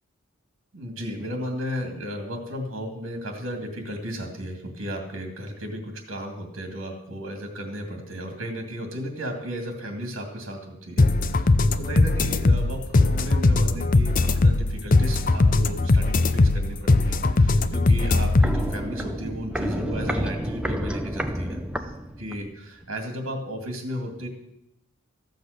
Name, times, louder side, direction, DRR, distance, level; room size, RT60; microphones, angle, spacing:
voice 1, 0.7-21.9 22.2-24.3, equal, 70° right, 3 dB, 2.3 m, -34 dB
sound 1, 11.0-18.7, left 2 dB, 40° left, 0.5 m, -20 dB
Walk footsteps, 18.2-22.5 22.8-22.9, right 1 dB, 5° right, 0.6 m, -30 dB
14.5 x 8.0 x 6.6 m, 0.81 s
head